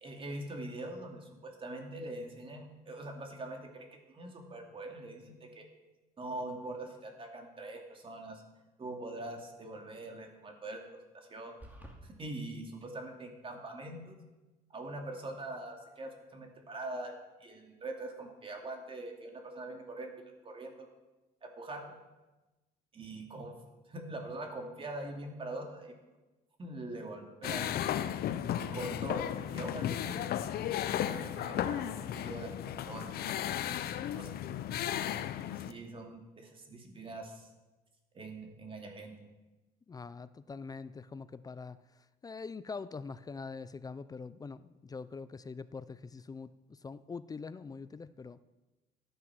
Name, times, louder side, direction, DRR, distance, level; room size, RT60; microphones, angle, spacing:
voice 1, 0.0-5.7 6.2-8.4 8.8-10.8 11.1-11.5 12.0-14.2 14.7-20.1 20.4-20.9 21.4-22.0 22.9-23.5 23.9-25.9 26.6-27.7 28.7-30.3 30.9-34.3 35.5-37.5 38.1-39.1, right 2 dB, 30° right, 2 dB, 2.6 m, -43 dB
sound 1, 11.6-12.0, right 1 dB, 10° right, 2.4 m, -49 dB
sound 2, 27.4-35.7, left 11 dB, 65° left, 0.7 m, -35 dB
voice 2, 39.9-48.4, left 4 dB, 20° left, 15 dB, 0.5 m, -44 dB
13.0 x 9.3 x 6.1 m, 1.1 s
cardioid pair, 110°, 17 cm